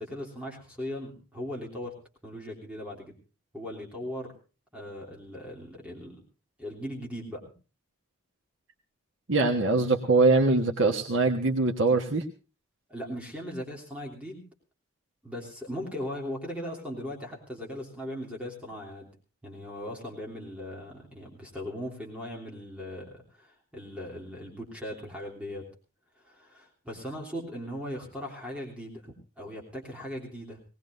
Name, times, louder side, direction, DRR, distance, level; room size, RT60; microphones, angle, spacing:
voice 1, 0.0-1.9 2.2-3.1 3.5-4.3 4.7-6.2 6.6-7.4 12.9-14.4 15.2-19.1 19.4-25.7 26.2-30.6, left 1 dB, 5° right, -2 dB, 3.2 m, -38 dB
voice 2, 9.3-12.2, right 3 dB, 75° right, 2 dB, 1.4 m, -23 dB
21.0 x 18.5 x 2.6 m, 0.34 s
head